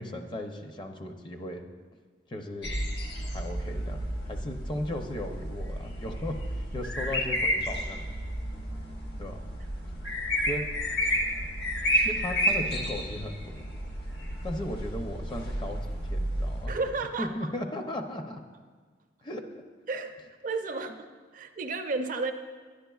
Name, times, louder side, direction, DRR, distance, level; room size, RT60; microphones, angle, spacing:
voice 1, 0.0-1.6 2.3-2.8 3.2-8.1 9.2-9.5 10.5-10.7 12.0-13.5 14.4-16.8 17.2-18.4 19.2-19.6, left 1 dB, 25° left, 4 dB, 0.5 m, -36 dB
sound 1, 2.6-16.7, equal, 60° left, 1.1 m, -31 dB
voice 2, 16.7-17.5 19.9-20.2 20.4-22.3, right 3 dB, 45° right, 7 dB, 0.4 m, -32 dB
10.5 x 10.0 x 2.3 m, 1.5 s
head